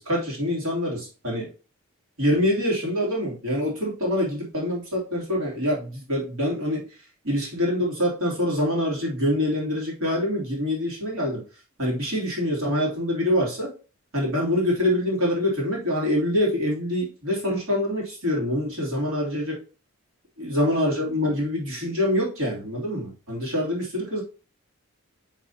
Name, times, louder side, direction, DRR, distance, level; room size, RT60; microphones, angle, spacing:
voice 1, 0.0-1.5 2.2-6.8 7.2-11.4 11.8-13.7 14.1-19.6 20.4-24.2, left 1 dB, 85° right, -4 dB, 3.1 m, -25 dB
5.8 x 5.7 x 2.8 m, 0.35 s
head